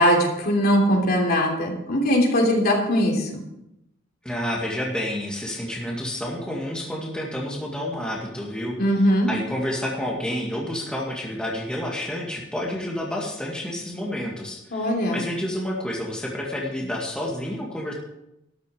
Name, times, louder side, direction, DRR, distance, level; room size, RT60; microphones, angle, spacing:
voice 1, 0.0-3.4 8.8-9.3 14.7-15.2, equal, 50° left, 0 dB, 3.1 m, -20 dB
voice 2, 4.2-8.8 9.3-17.9, left 1 dB, 5° left, -3 dB, 2.0 m, -29 dB
13.0 x 11.0 x 5.0 m, 0.87 s
head